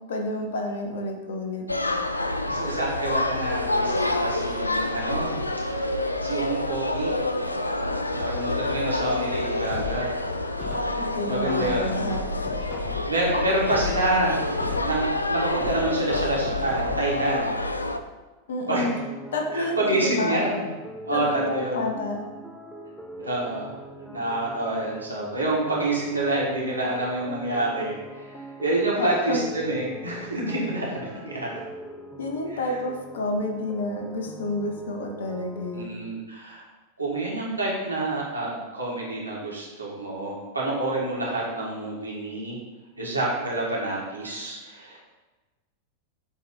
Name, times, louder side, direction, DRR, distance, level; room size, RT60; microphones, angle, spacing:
voice 1, 0.1-1.7 11.0-12.6 13.3-13.5 18.5-19.0 19.3-20.5 21.1-22.3 29.0-29.4 32.2-35.9, left 2 dB, 60° left, 3 dB, 0.9 m, -29 dB
sound 1, 1.7-18.0, left 2 dB, 85° left, 0.4 m, -27 dB
voice 2, 2.5-5.4 5.7-7.1 7.7-10.1 11.3-12.1 13.1-14.4 14.8-17.5 18.7-18.8 19.5-20.7 21.1-21.9 23.2-23.7 24.0-31.5 32.5-32.6 35.7-36.6 37.0-42.6 43.0-45.0, right 2 dB, 80° right, -5 dB, 1.9 m, -28 dB
sound 2, 9.7-11.1 11.6-13.2 13.6-15.1 15.6-17.2 17.6-17.7, left 4 dB, 30° left, 1.4 m, -37 dB
sound 3, 18.7-35.8, right 1 dB, 5° right, 0.7 m, -43 dB
7.5 x 3.6 x 4.3 m, 1.2 s
figure-of-eight pair, 90°, 0 cm